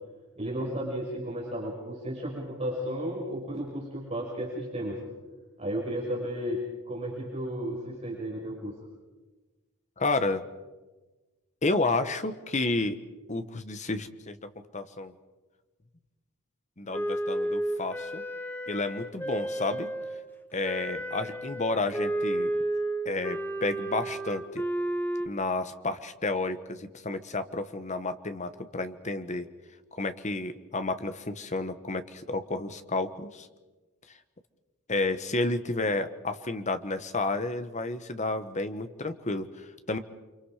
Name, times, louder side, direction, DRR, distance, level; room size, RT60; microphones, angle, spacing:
voice 1, 0.4-5.0 5.6-8.8, equal, 30° right, -3 dB, 5.7 m, -33 dB
voice 2, 10.0-10.4 11.6-13.0 13.3-14.4 14.7-15.1 16.8-18.2 18.7-19.9 20.5-22.5 23.0-24.6 25.2-29.5 29.9-33.5 34.9-40.0, left 2 dB, 35° left, 10 dB, 1.2 m, -31 dB
Wind instrument woodwind instrument, 16.9-20.2 20.6-25.3, right 1 dB, 10° left, 1.2 m, -32 dB
29.5 x 25.5 x 5.0 m, 1.2 s
head